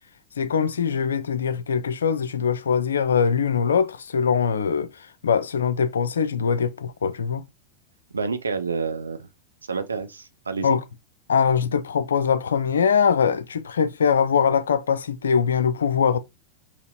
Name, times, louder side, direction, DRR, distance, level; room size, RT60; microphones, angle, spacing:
voice 1, 0.4-7.4 10.6-10.8 11.3-16.2, left 6 dB, 70° left, 0.4 m, -22 dB
voice 2, 8.1-9.3 9.7-10.8, right 4 dB, 75° right, 0.6 m, -28 dB
5.0 x 2.8 x 2.7 m
figure-of-eight pair, 90°, 0 cm